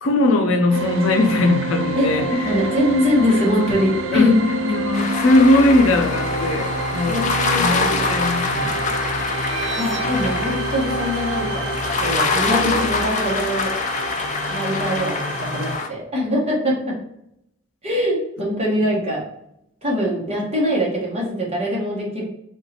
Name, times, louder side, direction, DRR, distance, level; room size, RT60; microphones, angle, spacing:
voice 1, 0.0-2.6 4.1-8.9, left 1 dB, 90° left, 6 dB, 0.6 m, -19 dB
sound 1, 0.7-15.8, right 2 dB, 65° right, 0.5 m, -27 dB
voice 2, 2.4-4.3 7.1-7.7 9.7-11.7 12.0-13.7 14.5-16.9 17.8-19.2 19.8-22.2, left 1 dB, 30° right, -4 dB, 1.2 m, -22 dB
sound 2, 4.9-15.9, left 4 dB, 35° left, 0.4 m, -25 dB
3.5 x 3.1 x 2.8 m, 0.77 s
head